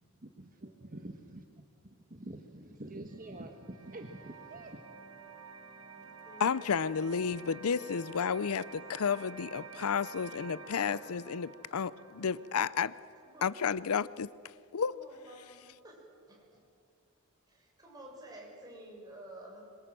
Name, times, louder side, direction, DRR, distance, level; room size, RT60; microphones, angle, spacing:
voice 1, 0.4-1.4 2.1-4.8, right 1 dB, 40° right, 1.4 m, -46 dB
voice 2, 2.5-3.0 5.9-6.4 9.0-9.3 10.7-11.2 12.0-12.3 13.2-13.8 14.9-16.6 17.5-19.6, right 1 dB, 20° right, 6.7 m, -53 dB
sound 1, 3.1-14.1, right 4 dB, 75° right, 2.5 m, -50 dB
voice 3, 6.4-12.9 13.4-14.3 14.7-15.0, left 6 dB, 70° left, 0.5 m, -32 dB
26.0 x 22.5 x 7.7 m
head